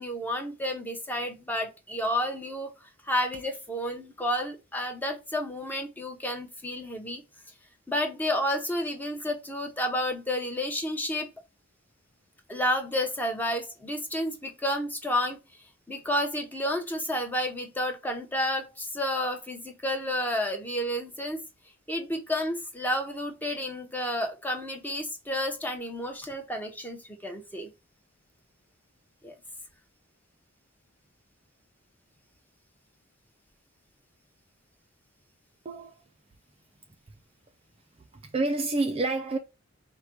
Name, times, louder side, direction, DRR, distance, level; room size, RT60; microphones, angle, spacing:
voice 1, 0.0-2.7 3.1-7.2 7.9-11.3 12.5-15.4 15.9-21.4 21.9-27.7 29.2-29.3, left 1 dB, 10° left, 0.7 m, -31 dB
voice 2, 35.6-36.0 38.1-39.4, right 2 dB, 30° right, 0.4 m, -28 dB
4.8 x 2.2 x 4.4 m
head